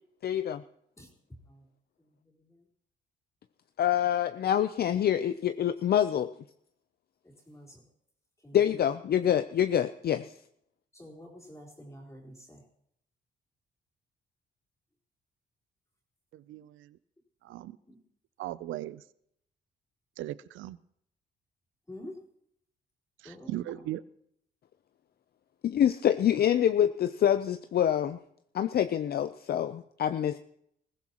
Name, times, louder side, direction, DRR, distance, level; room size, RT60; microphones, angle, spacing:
voice 1, 0.2-0.6 3.8-6.3 8.5-10.3 25.6-28.2 28.5-30.4, left 10 dB, 50° left, 11 dB, 0.6 m, -26 dB
voice 2, 2.0-2.7 7.2-7.9 8.4-8.8 10.9-12.6 17.9-18.0 21.9-22.2 23.2-23.8, left 1 dB, 15° left, -5 dB, 3.7 m, -48 dB
voice 3, 16.3-17.0 17.4-17.8 18.4-19.0 20.2-20.8 23.2-24.0, right 14 dB, 80° right, 17 dB, 0.5 m, -38 dB
21.0 x 15.5 x 3.0 m, 0.72 s
cardioid pair, 90°, 20 cm